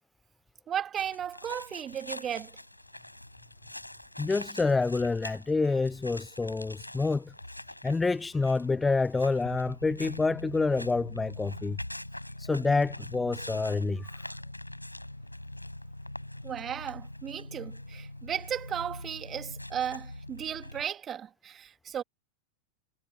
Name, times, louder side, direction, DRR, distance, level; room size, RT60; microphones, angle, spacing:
voice 1, 0.7-2.6 16.4-22.0, right 9 dB, 25° right, 2.7 m, -35 dB
sound 1, 1.0-20.8, left 1 dB, 85° left, 4.5 m, -43 dB
voice 2, 4.2-7.3 7.8-11.8 12.4-14.1, left 3 dB, 10° left, 0.4 m, -27 dB
figure-of-eight pair, 90°, 0 cm